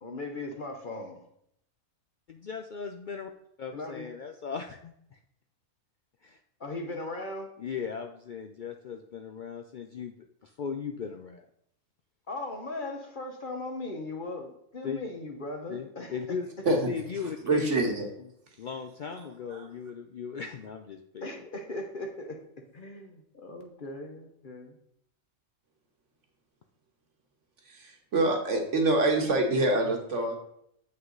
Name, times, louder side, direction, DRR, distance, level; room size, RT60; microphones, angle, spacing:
voice 1, 0.0-1.2 3.7-4.1 6.6-7.5 12.3-16.1 21.2-24.8, left 2 dB, 45° left, 3 dB, 0.9 m, -38 dB
voice 2, 2.3-3.3 3.6-5.2 6.2-6.4 7.6-10.1 10.4-11.5 14.8-15.0 15.7-17.7 18.2-18.3 18.6-21.2, left 6 dB, 90° left, 5 dB, 0.4 m, -38 dB
voice 3, 17.4-18.1 19.5-19.6 27.6-30.3, right 2 dB, 60° right, 2 dB, 1.6 m, -26 dB
7.8 x 5.6 x 3.8 m, 0.72 s
omnidirectional pair, 1.5 m